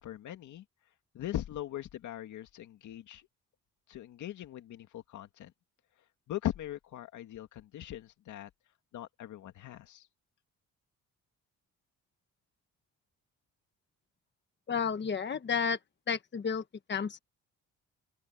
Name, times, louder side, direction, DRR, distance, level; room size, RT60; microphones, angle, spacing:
voice 1, 0.0-0.6 1.1-3.2 3.9-5.5 6.3-8.5 8.9-10.0, left 12 dB, 75° left, 2.3 m, -40 dB
voice 2, 14.7-15.8 16.1-17.2, left 6 dB, 35° left, 1.3 m, -32 dB
open air
cardioid pair, 90°, 30 cm